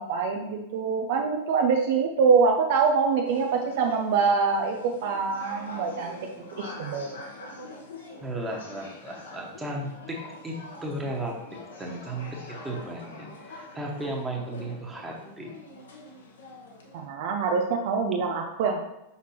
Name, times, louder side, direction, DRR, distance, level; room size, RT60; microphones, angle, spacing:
voice 1, 0.0-7.1 16.9-18.8, right 5 dB, 50° right, 3 dB, 0.6 m, -25 dB
sound 1, 3.2-17.1, left 2 dB, 65° left, 1.2 m, -44 dB
voice 2, 8.2-15.5, right 1 dB, 10° right, -1 dB, 1.4 m, -35 dB
5.8 x 5.6 x 3.0 m, 0.87 s
figure-of-eight pair, 90°, 0 cm